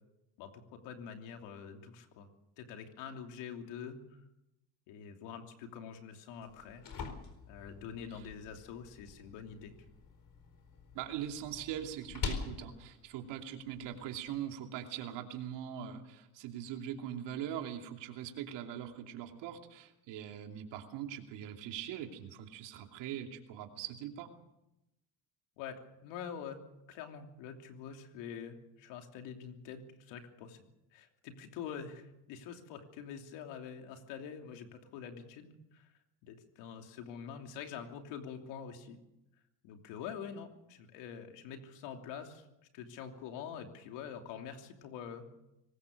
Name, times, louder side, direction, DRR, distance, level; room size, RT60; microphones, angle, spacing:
voice 1, 0.4-2.3 2.6-4.0 4.9-6.8 7.5-9.7 25.6-26.6 26.9-30.6 30.9-35.9 36.2-39.0 39.6-42.5 42.7-45.3, left 7 dB, 85° left, 4 dB, 3.1 m, -46 dB
sound 1, 6.4-14.4, left 5 dB, 50° left, 4.5 m, -45 dB
voice 2, 10.9-24.3, right 10 dB, 80° right, 4 dB, 2.9 m, -42 dB
23.5 x 20.0 x 6.7 m, 0.90 s
cardioid pair, 100°, 42 cm